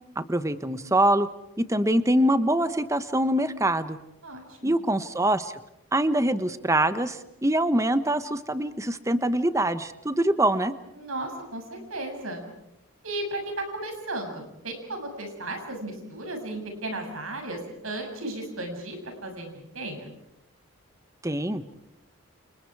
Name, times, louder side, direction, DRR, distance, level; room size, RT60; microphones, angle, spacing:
voice 1, 0.2-1.3 1.6-4.0 4.6-5.5 5.9-10.7 21.2-21.6, right 1 dB, 15° right, 11 dB, 1.1 m, -24 dB
voice 2, 4.2-4.8 11.0-12.4 13.0-20.1, right 2 dB, 80° right, 4 dB, 7.1 m, -35 dB
29.5 x 29.5 x 4.8 m, 0.84 s
head